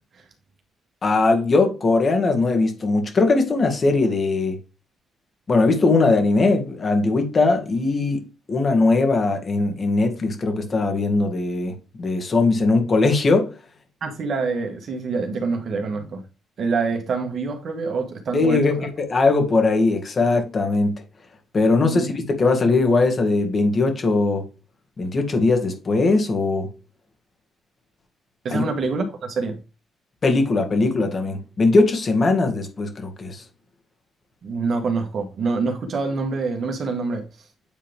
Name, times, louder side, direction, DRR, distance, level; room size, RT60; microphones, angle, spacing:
voice 1, 1.0-4.6 5.5-8.2 8.5-13.5 18.3-20.9 21.5-24.5 25.0-26.7 28.5-28.6 30.2-33.4, left 3 dB, 40° left, 2.0 m, -20 dB
voice 2, 14.0-16.2 16.6-18.9 21.8-22.1 28.4-29.6 34.4-37.2, right 4 dB, 55° right, 1.8 m, -26 dB
8.8 x 3.9 x 3.5 m
cardioid pair, 90°, 0 cm